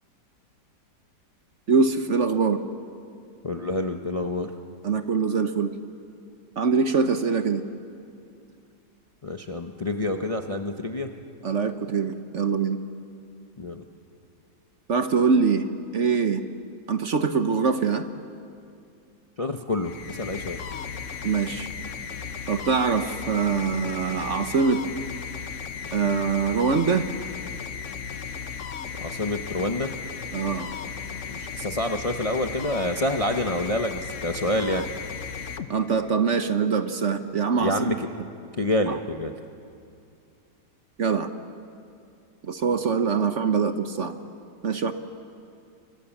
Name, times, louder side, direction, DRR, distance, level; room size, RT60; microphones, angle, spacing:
voice 1, 1.7-2.6 4.8-5.7 6.6-7.6 11.4-12.8 14.9-15.6 15.9-16.4 16.9-18.0 21.2-21.7 22.5-24.8 25.9-27.0 30.3-30.7 35.7-38.0 38.9-39.0 41.0-41.3 42.4-44.1 44.6-44.9, right 5 dB, 50° right, 8 dB, 1.2 m, -23 dB
voice 2, 3.4-4.5 9.2-11.1 13.6-13.8 19.4-20.6 29.0-29.9 31.3-34.9 37.6-38.1 38.6-39.3, left 1 dB, 30° left, 5 dB, 0.7 m, -27 dB
sound 1, 19.7-36.3, left 6 dB, 50° left, 1.1 m, -36 dB
29.0 x 24.0 x 7.3 m, 2.4 s
omnidirectional pair, 1.9 m